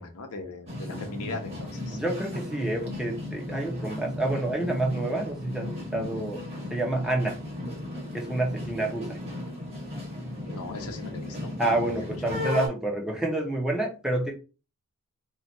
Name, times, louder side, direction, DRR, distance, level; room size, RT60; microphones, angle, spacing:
voice 1, 0.0-2.0 10.5-12.4, left 3 dB, 80° left, 4 dB, 0.8 m, -39 dB
sound 1, 0.7-12.7, left 1 dB, 30° right, 1.3 m, -36 dB
voice 2, 1.9-6.4 6.7-7.4 8.1-9.2 11.6-14.3, right 2 dB, 5° right, 0 dB, 0.7 m, -28 dB
2.9 x 2.4 x 4.1 m, 0.32 s
head